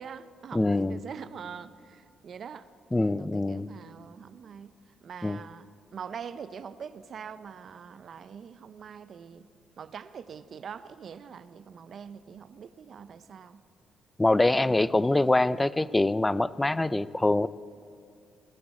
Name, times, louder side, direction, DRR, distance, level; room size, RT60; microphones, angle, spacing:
voice 1, 0.0-4.7 5.0-9.5 9.8-13.6 14.6-15.4, right 7 dB, 55° right, 13 dB, 0.6 m, -44 dB
voice 2, 0.5-1.0 2.9-3.7 5.2-5.4 14.2-17.5, left 2 dB, 15° left, 18 dB, 0.4 m, -24 dB
19.0 x 14.5 x 4.2 m, 2.3 s
cardioid pair, 90°, 0 cm